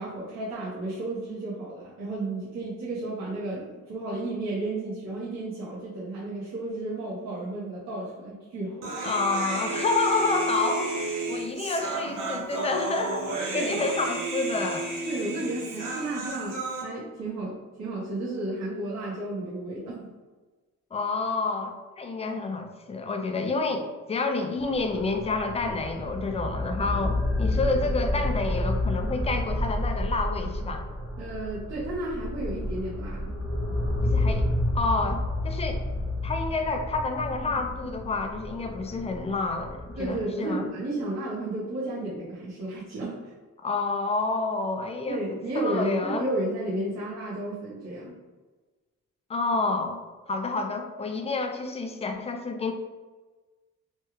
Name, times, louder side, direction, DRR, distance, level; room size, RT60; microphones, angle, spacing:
voice 1, 0.0-9.1 13.5-13.8 15.0-20.1 31.2-33.4 40.0-43.2 45.1-48.1, right 2 dB, 60° right, -9 dB, 1.0 m, -32 dB
Human voice, 8.8-16.8, right 2 dB, 80° right, 0.8 m, -32 dB
voice 2, 9.0-14.9 20.9-30.8 34.0-34.5 34.7-35.8 36.2-40.6 43.6-46.3 49.3-50.0 50.3-52.7, left 3 dB, 20° left, 4 dB, 0.3 m, -29 dB
sound 1, 24.6-40.2, left 1 dB, 10° right, 1.0 m, -30 dB
3.2 x 2.3 x 3.0 m, 1.3 s
cardioid pair, 105°, 31 cm